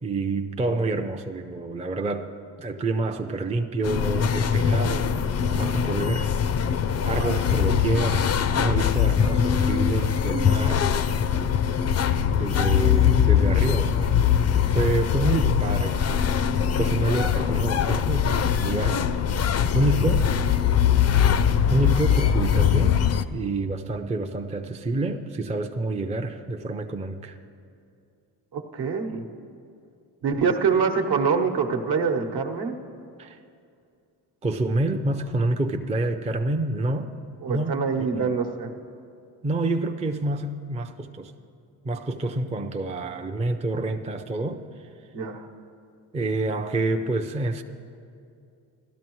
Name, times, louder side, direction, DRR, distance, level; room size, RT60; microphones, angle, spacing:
voice 1, 0.0-5.2 5.4-6.5 7.0-10.9 12.3-14.2 14.7-16.4 16.8-19.2 19.7-20.3 21.7-23.0 23.3-27.4 33.2-33.4 34.4-37.1 37.5-38.3 39.4-41.3 41.8-44.6 46.1-47.6, right 2 dB, 15° right, 5 dB, 0.5 m, -28 dB
sound 1, 3.8-23.2, left 8 dB, 35° left, 0.4 m, -22 dB
voice 2, 28.5-29.2 30.2-32.8 37.4-38.7 45.1-45.5, right 5 dB, 60° right, 4 dB, 1.1 m, -25 dB
16.0 x 12.5 x 3.1 m, 2.5 s
supercardioid pair, 65°, 45 cm